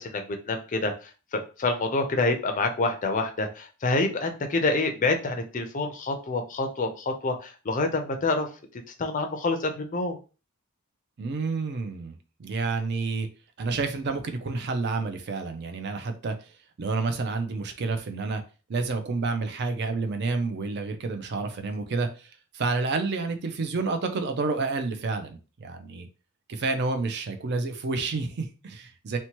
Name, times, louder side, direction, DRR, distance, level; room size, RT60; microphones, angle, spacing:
voice 1, 0.0-8.5 9.0-10.2, left 3 dB, 35° left, 5 dB, 0.5 m, -27 dB
voice 2, 11.2-13.3 13.6-16.5 16.8-18.4 18.7-26.1 26.5-29.2, right 3 dB, 50° right, 7 dB, 0.4 m, -29 dB
2.9 x 2.1 x 2.9 m, 0.34 s
head